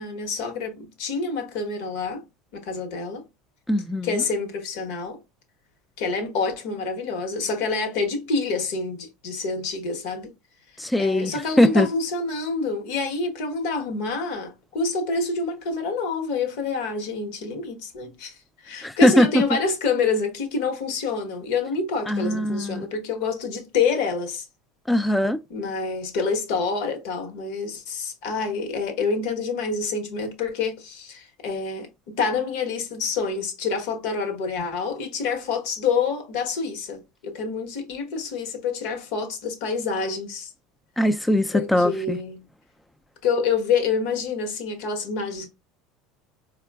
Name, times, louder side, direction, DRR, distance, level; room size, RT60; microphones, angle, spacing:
voice 1, 0.0-2.2 2.5-3.2 4.0-5.2 6.0-10.3 11.0-24.5 25.5-40.5 41.5-42.5 43.2-45.5, left 4 dB, 70° left, 1.1 m, -27 dB
voice 2, 3.7-4.2 10.8-11.9 18.8-19.4 22.1-22.9 24.9-25.4 41.0-42.2, left 1 dB, 5° left, 0.4 m, -21 dB
4.3 x 2.3 x 2.3 m
hypercardioid pair, 95°, 0 cm